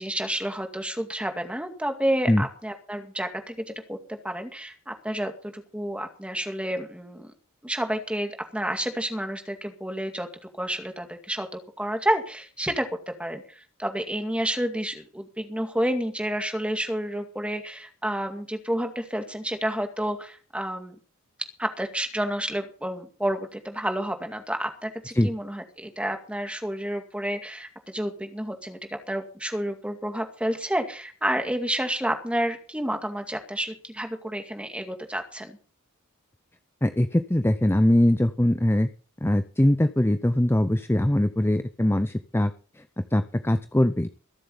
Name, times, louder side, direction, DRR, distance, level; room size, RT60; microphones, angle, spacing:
voice 1, 0.0-7.3 7.6-10.3 10.6-12.9 13.2-21.0 21.6-35.6, right 1 dB, 5° right, 6 dB, 2.2 m, -30 dB
voice 2, 36.8-38.9 39.2-44.1, left 1 dB, 10° left, 10 dB, 0.7 m, -22 dB
22.5 x 7.6 x 5.5 m, 0.39 s
head